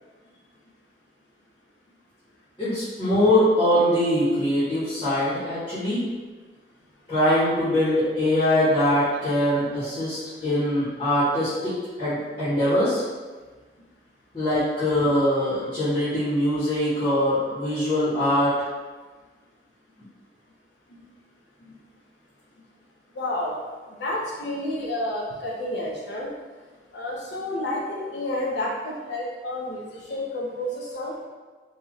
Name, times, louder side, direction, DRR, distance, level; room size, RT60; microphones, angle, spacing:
voice 1, 2.6-6.0 7.1-11.7 12.0-13.0 14.3-18.5, left 1 dB, 30° left, -13 dB, 1.3 m, -22 dB
voice 2, 23.1-23.6 23.9-26.3 26.9-31.2, left 1 dB, 90° left, -3 dB, 0.8 m, -30 dB
4.1 x 2.7 x 3.1 m, 1.4 s
head